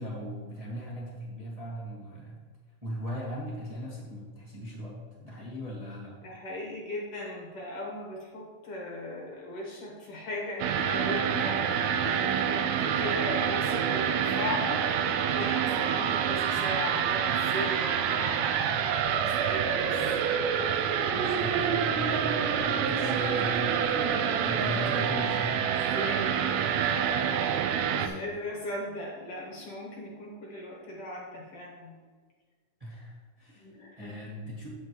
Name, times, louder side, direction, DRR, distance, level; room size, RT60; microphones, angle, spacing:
voice 1, 0.0-2.4 2.8-4.9 5.2-6.2 21.1-25.6 32.8-33.7 34.0-34.7, left 1 dB, 20° right, -6 dB, 1.0 m, -38 dB
voice 2, 6.2-20.1 21.1-21.6 25.9-32.1 33.5-34.1, left 1 dB, 55° left, -2 dB, 2.0 m, -38 dB
sound 1, 10.6-28.1, right 8 dB, 80° right, 1.6 m, -27 dB
8.6 x 7.8 x 3.1 m, 1.5 s
omnidirectional pair, 3.6 m